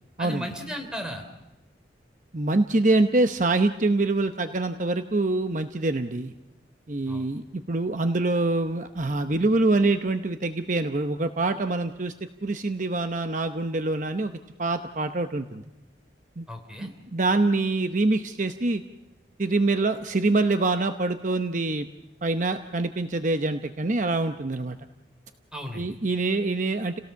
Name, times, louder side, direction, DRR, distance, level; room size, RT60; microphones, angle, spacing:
voice 1, 0.2-1.2 7.1-7.3 16.5-16.9 25.5-25.9, equal, 5° right, 3 dB, 3.2 m, -35 dB
voice 2, 2.3-6.3 6.9-14.3 14.6-15.6 16.4-16.5 16.8-18.8 19.4-21.9 22.2-24.8 25.7-27.0, right 2 dB, 45° right, 8 dB, 0.8 m, -25 dB
30.0 x 17.5 x 7.0 m, 1.0 s
head